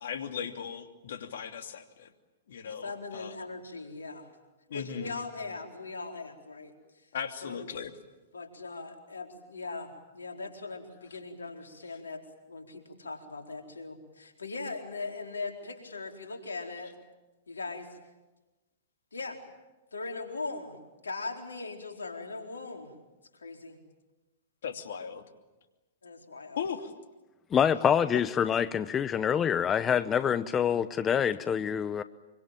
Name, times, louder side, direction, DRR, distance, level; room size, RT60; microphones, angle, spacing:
voice 1, 0.0-2.1 2.5-3.3 4.7-5.2 7.1-7.9 24.6-25.2 26.6-26.9 28.1-28.2, left 7 dB, 70° left, 2.8 m, -37 dB
voice 2, 2.6-4.3 4.7-6.7 7.4-7.7 8.3-12.2 12.5-16.9 17.5-17.9 19.1-19.4 19.9-20.8 21.0-22.9 23.3-23.8 26.0-26.6, left 3 dB, 90° left, 4.3 m, -40 dB
voice 3, 27.5-32.0, left 8 dB, 25° left, 0.9 m, -26 dB
25.5 x 25.0 x 9.1 m
hypercardioid pair, 110°, 0 cm